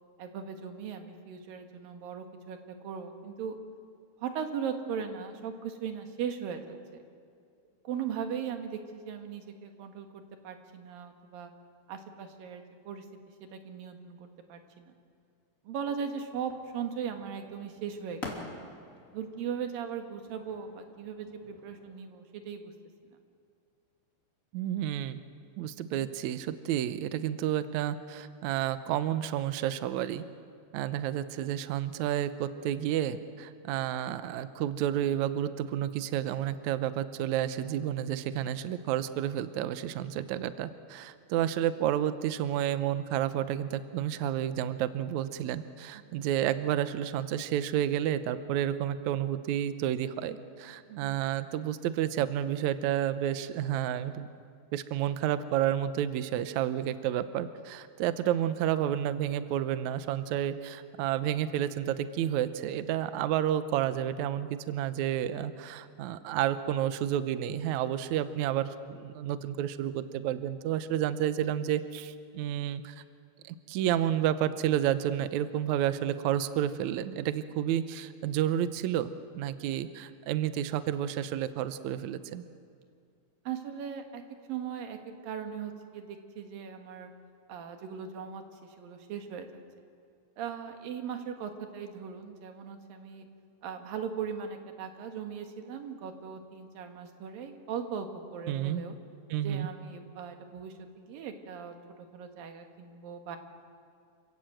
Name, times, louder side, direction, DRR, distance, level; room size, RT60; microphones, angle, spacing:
voice 1, 0.2-3.6 4.2-7.0 7.8-11.5 11.9-13.0 13.4-14.9 15.6-18.5 19.1-22.7 23.1-23.2 50.9-51.2 83.4-84.2 84.5-85.0 85.2-87.1 87.5-89.5 90.4-93.3 93.6-99.0 99.4-101.8 102.1-103.4, right 7 dB, 70° right, 5 dB, 3.1 m, -38 dB
sound 1, 16.3-22.0, left 2 dB, 25° left, 2.9 m, -47 dB
voice 2, 24.5-25.2 25.6-30.2 30.7-54.3 54.7-73.0 73.5-82.4 98.5-98.8 99.3-99.7, right 11 dB, 85° right, 12 dB, 1.6 m, -30 dB
28.5 x 16.5 x 7.9 m, 2.2 s
omnidirectional pair, 4.5 m